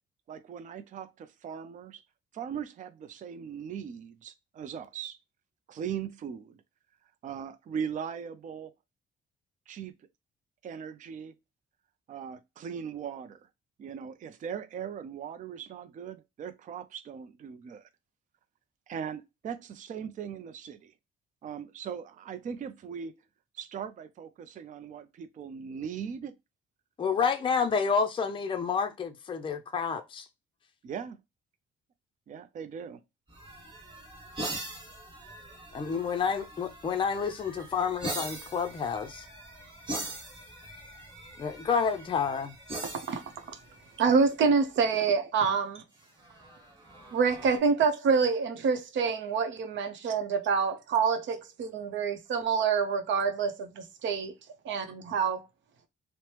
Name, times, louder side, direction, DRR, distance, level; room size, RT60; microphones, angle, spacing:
voice 1, 0.3-2.0 2.3-5.2 5.7-6.6 7.2-8.7 9.7-9.9 10.6-11.3 12.1-13.4 13.8-17.9 18.9-20.9 21.4-23.2 23.5-25.0 25.4-26.4 30.8-31.2 32.3-33.0, right 7 dB, 40° right, 0.4 m, -39 dB
voice 2, 27.0-30.2 35.7-39.3 41.4-42.5, left 6 dB, 25° left, 0.5 m, -29 dB
sound 1, 33.3-44.4 46.0-47.6, right 1 dB, 25° right, 1.5 m, -42 dB
voice 3, 42.8-43.2 43.5-43.6 44.0-45.8 47.1-54.3 54.6-55.5, right 5 dB, 70° right, 0.7 m, -27 dB
3.1 x 2.0 x 2.8 m
cardioid pair, 90°, 20 cm